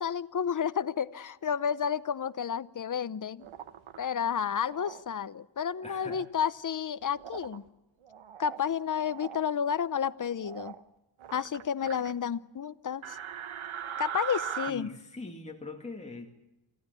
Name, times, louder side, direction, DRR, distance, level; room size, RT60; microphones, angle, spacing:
voice 1, 0.0-3.5 4.0-7.6 8.4-10.7 11.3-13.2 14.0-14.9, left 7 dB, 40° left, 14 dB, 0.8 m, -31 dB
sound 1, 3.4-4.0 4.7-5.0 5.8-6.3 7.2-7.6 8.0-8.6 9.0-9.4 10.4-10.8 11.2-12.1 13.0-14.7, right 8 dB, 75° right, 1.2 m, -40 dB
voice 2, 5.8-6.2 14.7-16.3, left 3 dB, 15° left, 1 dB, 2.3 m, -42 dB
28.5 x 15.5 x 8.3 m, 0.98 s
wide cardioid pair, 110°, 48 cm